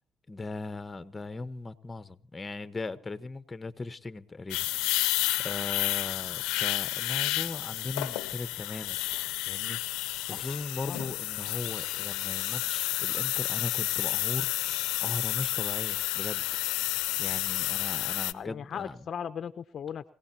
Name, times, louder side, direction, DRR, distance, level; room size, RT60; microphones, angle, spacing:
voice 1, 0.3-9.0 9.4-14.5 15.0-16.4 16.7-19.1, left 3 dB, 20° left, 1.2 m, -39 dB
sound 1, 4.5-18.3, left 18 dB, 90° left, 0.8 m, -31 dB
voice 2, 18.3-20.1, left 8 dB, 55° left, 0.8 m, -37 dB
28.0 x 17.0 x 2.9 m
supercardioid pair, 85°, 0 cm